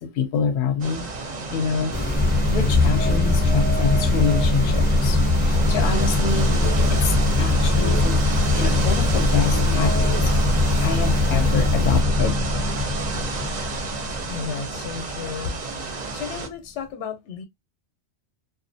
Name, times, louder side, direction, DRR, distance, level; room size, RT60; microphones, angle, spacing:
voice 1, 0.0-1.1 1.5-2.0 2.5-6.5 6.9-8.3 8.6-10.3 10.8-12.4, left 6 dB, 60° left, 0.6 m, -26 dB
sound 1, 0.8-16.5, right 3 dB, 45° right, 0.6 m, -31 dB
sound 2, 1.9-12.0, left 1 dB, 15° left, 0.3 m, -26 dB
sound 3, 2.2-15.4, left 2 dB, ahead, 0.7 m, -22 dB
voice 2, 14.3-15.6 16.1-17.4, left 7 dB, 90° left, 0.9 m, -33 dB
2.5 x 2.0 x 2.6 m
omnidirectional pair, 1.2 m